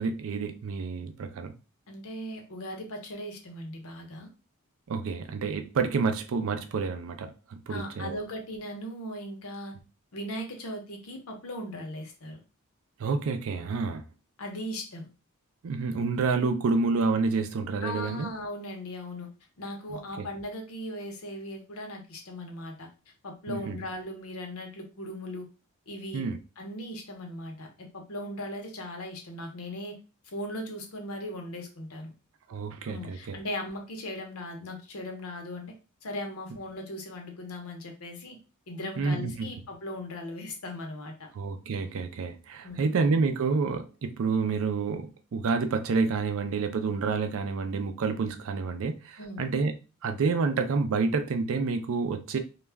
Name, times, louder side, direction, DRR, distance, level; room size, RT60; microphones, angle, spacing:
voice 1, 0.0-1.5 4.9-8.2 13.0-14.1 15.6-18.3 19.9-20.3 23.5-23.8 26.1-26.4 32.5-33.4 39.0-39.5 41.3-49.7 50.0-52.4, right 4 dB, 65° right, 0.4 m, -29 dB
voice 2, 1.9-4.3 7.7-9.7 10.1-12.4 14.4-15.1 17.8-19.3 19.6-22.9 23.2-25.5 25.9-26.2 26.6-30.0 30.3-32.1 32.8-35.7 36.0-38.4 38.7-41.3 42.6-43.0 49.2-49.4, left 1 dB, 80° left, 0.8 m, -38 dB
2.3 x 2.1 x 3.3 m
head